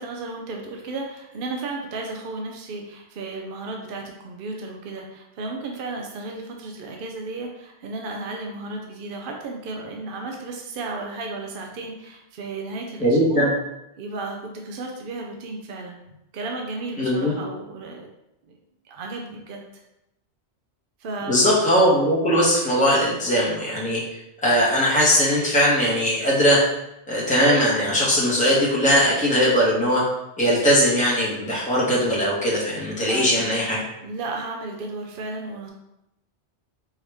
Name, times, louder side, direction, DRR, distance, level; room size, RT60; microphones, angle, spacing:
voice 1, 0.0-13.5 14.0-14.4 14.6-16.0 16.3-18.1 18.5-18.6 18.8-19.6 21.0-21.4 33.1-33.5 34.0-35.7, right 3 dB, 60° right, 1 dB, 0.7 m, -34 dB
voice 2, 13.0-13.5 17.0-17.3 21.3-24.0 24.4-26.6 27.1-30.0 30.4-33.8, equal, 5° left, -6 dB, 1.1 m, -20 dB
4.6 x 2.9 x 3.4 m, 0.86 s
omnidirectional pair, 1.1 m